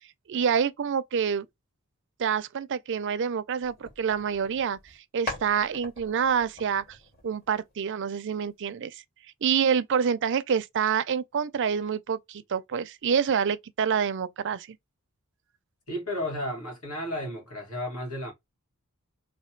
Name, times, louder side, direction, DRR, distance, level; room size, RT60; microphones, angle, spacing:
voice 1, 0.3-1.5 2.2-4.8 5.1-7.0 7.2-9.0 9.4-14.8, right 7 dB, 55° right, 0.4 m, -27 dB
sound 1, 3.6-5.0 5.3-7.9, left 2 dB, 45° left, 2.0 m, -42 dB
voice 2, 15.9-18.3, left 1 dB, 80° left, 1.9 m, -33 dB
3.2 x 2.6 x 4.4 m
head